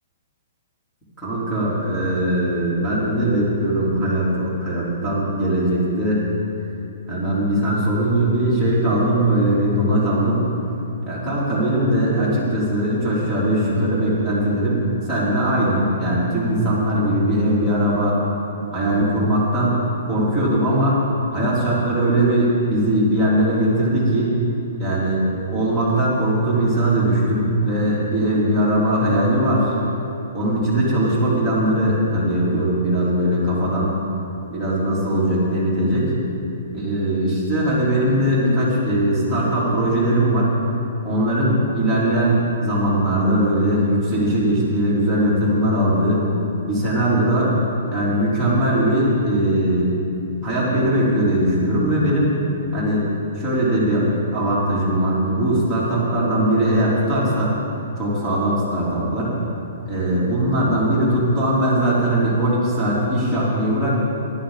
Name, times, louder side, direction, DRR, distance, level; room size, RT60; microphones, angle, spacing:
voice 1, 1.2-6.3 7.1-10.5 11.1-18.2 18.7-21.0 21.3-24.4 24.8-29.8 30.3-33.9 34.5-36.1 36.7-40.6 41.0-46.2 46.7-47.5 47.9-49.9 50.4-52.3 52.7-53.1 53.3-57.6 58.0-59.4 59.9-63.9, right 1 dB, ahead, -11 dB, 3.6 m, -20 dB
15.0 x 12.0 x 4.1 m, 2.8 s
hypercardioid pair, 160°, 0 cm